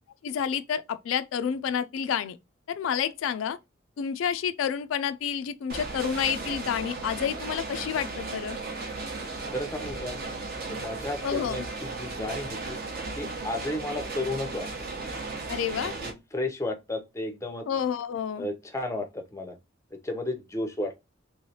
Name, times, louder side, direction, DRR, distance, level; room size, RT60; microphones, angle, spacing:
voice 1, 0.2-2.4 2.7-3.6 4.0-8.6 11.2-11.7 15.5-15.9 17.7-18.5, left 8 dB, 80° left, 0.3 m, -29 dB
sound 1, 5.7-16.1, right 3 dB, 50° right, 0.8 m, -36 dB
voice 2, 9.5-10.2 10.7-12.8 13.1-14.7 15.8-17.7 18.4-19.6 19.9-21.0, left 1 dB, 15° left, 0.5 m, -33 dB
3.2 x 2.9 x 2.7 m
head